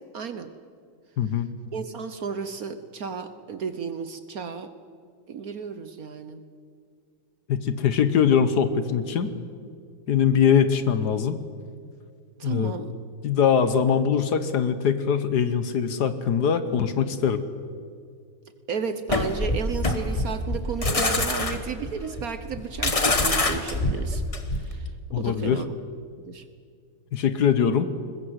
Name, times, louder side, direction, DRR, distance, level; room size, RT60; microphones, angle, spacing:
voice 1, 0.1-0.5 1.7-4.7 5.3-6.4 12.4-13.0 18.7-24.2 24.5-24.9 25.2-25.8 26.2-26.4, right 6 dB, 55° right, 10 dB, 1.2 m, -33 dB
voice 2, 1.2-1.5 7.5-9.3 10.1-11.4 12.4-12.7 13.2-17.4 25.1-25.6 27.1-27.9, left 7 dB, 60° left, 11 dB, 1.5 m, -22 dB
sound 1, 19.1-24.8, left 2 dB, 20° left, 1.1 m, -25 dB
21.0 x 21.0 x 8.1 m, 2.2 s
omnidirectional pair, 2.1 m